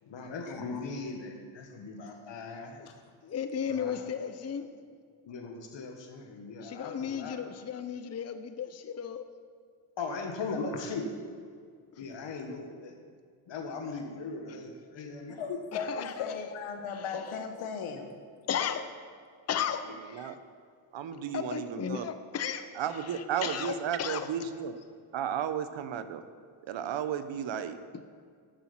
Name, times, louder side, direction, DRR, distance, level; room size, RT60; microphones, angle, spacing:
voice 1, 0.0-2.8 3.7-4.0 5.2-7.4 10.0-11.1 12.0-12.9 13.5-15.4 17.1-17.4, left 4 dB, 60° left, 4 dB, 1.7 m, -39 dB
voice 2, 3.2-4.7 6.6-9.3 15.7-16.3 16.9-17.0 18.5-18.8 19.5-20.4 21.3-22.7 23.1-24.3, left 8 dB, 30° left, 9 dB, 0.7 m, -35 dB
voice 3, 15.4-18.1, left 5 dB, 80° left, 6 dB, 1.3 m, -37 dB
voice 4, 19.9-20.4 20.9-22.1 22.7-24.8 25.1-26.2 26.6-27.8, right 8 dB, 65° right, 11 dB, 0.9 m, -34 dB
10.5 x 7.2 x 5.8 m, 2.1 s
cardioid pair, 70°, 49 cm